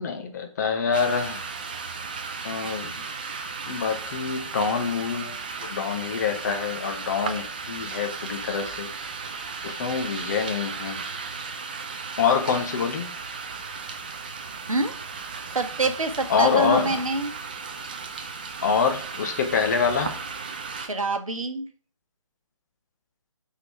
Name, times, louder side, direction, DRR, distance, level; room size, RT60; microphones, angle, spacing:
voice 1, 0.0-1.4 2.4-3.0 3.7-8.9 9.6-11.0 12.2-13.1 16.3-17.0 18.6-20.1, left 6 dB, 35° left, 6 dB, 0.9 m, -26 dB
sound 1, 0.9-20.9, right 5 dB, 15° right, 0.3 m, -35 dB
voice 2, 15.5-17.3 20.7-21.7, right 3 dB, 85° right, 7 dB, 1.0 m, -26 dB
5.8 x 3.8 x 4.6 m, 0.43 s
figure-of-eight pair, 150°, 17 cm